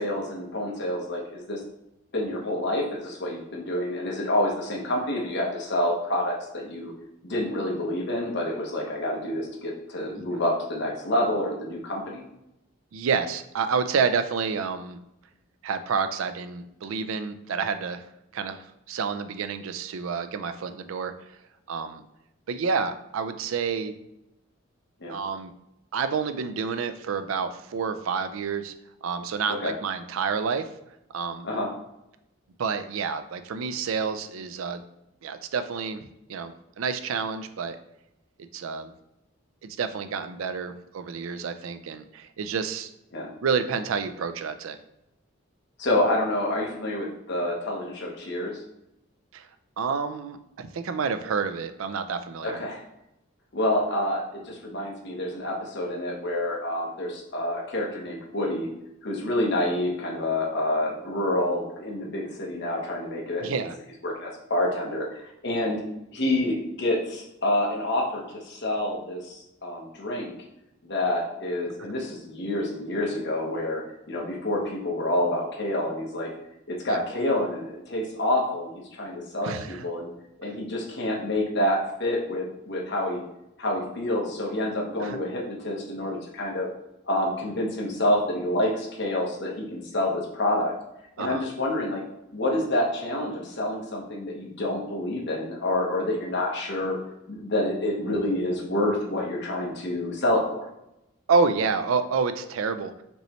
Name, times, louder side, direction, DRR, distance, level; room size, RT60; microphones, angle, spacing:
voice 1, 0.0-1.6 2.1-6.9 7.2-12.2 25.0-25.1 29.6-29.7 31.4-31.7 43.1-43.3 45.8-48.5 52.4-52.8 53.5-58.7 59.0-63.7 64.0-65.8 66.1-70.3 70.8-76.3 76.7-80.1 80.4-83.2 83.6-86.7 87.1-90.7 91.2-92.0 92.3-97.0 97.3-100.7, left 1 dB, 55° left, -1 dB, 1.1 m, -28 dB
voice 2, 12.9-15.0 15.6-18.0 18.3-18.6 18.9-21.1 21.7-22.0 22.5-23.9 25.1-25.5 25.9-28.7 29.0-30.7 31.1-31.5 32.6-34.8 35.2-36.0 36.3-37.8 38.5-38.9 39.6-42.9 43.4-44.8 49.3-49.5 49.8-52.6 63.4-63.7 76.9-77.0 79.4-79.8 85.0-85.2 91.2-91.4 101.3-103.0, right 5 dB, 85° right, 10 dB, 0.4 m, -29 dB
5.2 x 3.1 x 3.0 m, 0.86 s
head